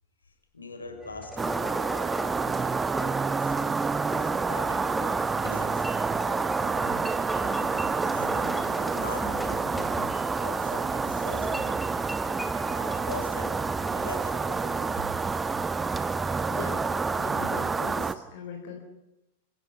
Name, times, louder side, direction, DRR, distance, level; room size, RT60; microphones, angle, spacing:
voice 1, 0.5-1.5 2.4-2.7 3.4-3.5 4.2-4.8 5.3-6.0 8.0-9.7 10.4-11.9 12.8-15.0, left 2 dB, 75° left, 4 dB, 5.7 m, -41 dB
sound 1, 1.0-14.0, equal, 5° left, 2.9 m, -39 dB
Roomtone Outside Neighborhood Night, 1.4-18.1, right 4 dB, 15° right, 1.1 m, -28 dB
voice 2, 16.5-18.8, left 5 dB, 50° left, 3 dB, 4.1 m, -41 dB
27.5 x 15.5 x 9.4 m, 0.93 s
figure-of-eight pair, 90°, 0 cm